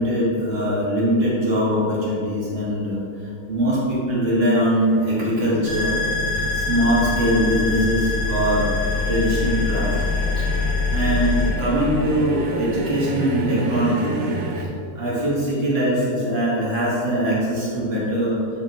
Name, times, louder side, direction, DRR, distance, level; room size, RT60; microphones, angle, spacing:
voice 1, 0.0-3.0 3.5-6.0 6.5-8.8 9.1-10.0 10.4-10.5 10.9-14.2 15.0-18.4, equal, 35° right, -7 dB, 1.8 m, -22 dB
sound 1, 4.7-14.6, right 3 dB, 65° right, 1.1 m, -32 dB
sound 2, 5.6-11.5, left 4 dB, 70° left, 1.6 m, -24 dB
8.6 x 4.2 x 3.1 m, 2.6 s
omnidirectional pair, 1.7 m